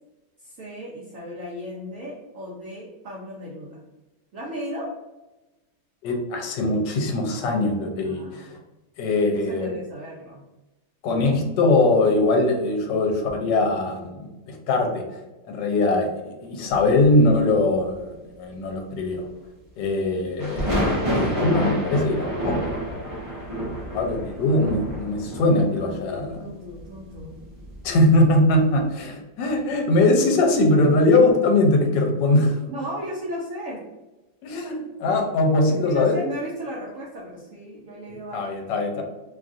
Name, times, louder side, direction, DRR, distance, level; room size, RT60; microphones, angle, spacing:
voice 1, 0.4-3.8 4.3-4.9 8.0-8.6 9.2-10.4 25.9-27.4 32.7-33.8 35.6-38.6, equal, 75° right, -4 dB, 0.7 m, -35 dB
voice 2, 6.0-8.5 9.0-9.7 11.0-15.0 15.5-19.3 19.8-22.8 23.9-26.4 27.8-32.6 34.4-36.2 38.3-39.0, left 2 dB, 75° left, 2 dB, 1.2 m, -21 dB
sound 1, 16.7-17.3 20.4-28.1 28.5-28.7, equal, 30° right, 0.6 m, -29 dB
3.1 x 2.4 x 2.5 m, 1.1 s
omnidirectional pair, 2.0 m